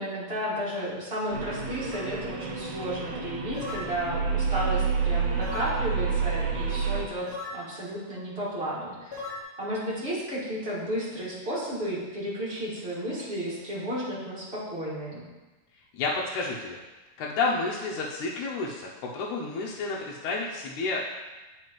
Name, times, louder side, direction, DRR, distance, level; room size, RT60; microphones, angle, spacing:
voice 1, 0.0-9.3 9.6-15.2, equal, 25° right, -9 dB, 1.6 m, -33 dB
sound 1, 1.3-7.1, right 5 dB, 75° right, 1.7 m, -29 dB
sound 2, 1.9-2.1 3.6-3.9 5.4-5.8 7.3-7.6 9.1-9.4, left 3 dB, 55° left, 1.1 m, -37 dB
voice 2, 15.9-16.8 17.2-21.2, left 3 dB, 75° left, -3 dB, 1.9 m, -30 dB
9.0 x 4.9 x 3.1 m, 1.2 s
omnidirectional pair, 3.7 m